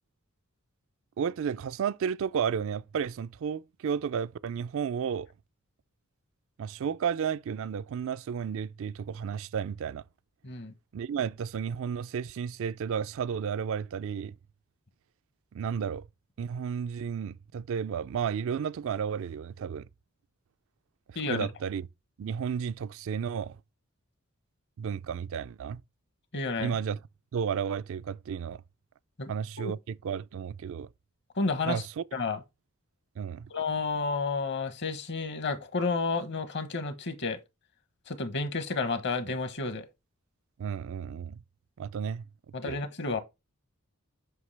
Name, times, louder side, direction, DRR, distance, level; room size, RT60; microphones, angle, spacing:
voice 1, 1.2-5.3 6.6-10.0 10.9-14.4 15.5-16.0 16.4-19.9 21.1-21.9 22.2-23.6 24.8-25.8 26.6-27.0 27.3-28.6 29.3-30.9 31.6-32.0 33.2-33.5 40.6-41.4 41.8-42.2 42.6-42.8, right 7 dB, 65° right, 0.3 m, -32 dB
voice 2, 10.4-10.7 21.1-21.5 26.3-26.8 29.2-29.3 29.6-29.7 31.4-31.8 32.1-32.4 33.5-37.4 38.1-39.9 42.5-43.2, left 4 dB, 55° left, 1.1 m, -31 dB
7.9 x 5.7 x 3.3 m
head